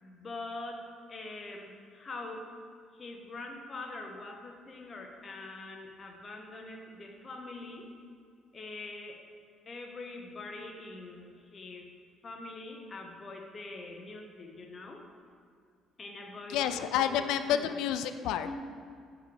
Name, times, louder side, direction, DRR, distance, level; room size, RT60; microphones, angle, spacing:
voice 1, 0.0-2.5 2.9-7.9 8.5-9.2 9.7-11.9 12.2-15.0 16.0-17.8 18.4-18.5, left 2 dB, 25° left, 2 dB, 0.8 m, -44 dB
voice 2, 16.5-18.5, left 9 dB, 85° left, 10 dB, 0.3 m, -29 dB
6.4 x 4.8 x 5.1 m, 2.2 s
cardioid pair, 150°, 0 cm